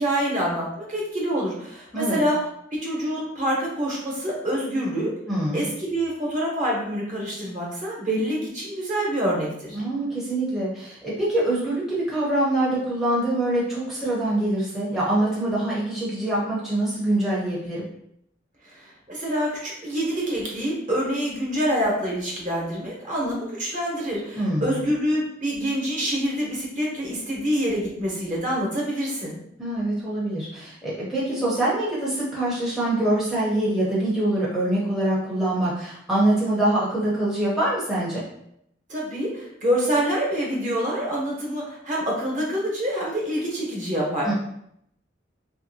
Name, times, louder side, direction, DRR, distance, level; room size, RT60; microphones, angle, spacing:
voice 1, 0.0-2.4 2.8-5.1 5.5-9.8 18.6-29.4 38.9-44.3, equal, 40° right, -4 dB, 0.9 m, -26 dB
voice 2, 5.3-5.7 9.7-11.8 12.1-17.8 24.4-24.8 29.6-38.2 44.2-44.3, right 1 dB, ahead, -8 dB, 0.6 m, -24 dB
2.9 x 2.6 x 2.6 m, 0.75 s
head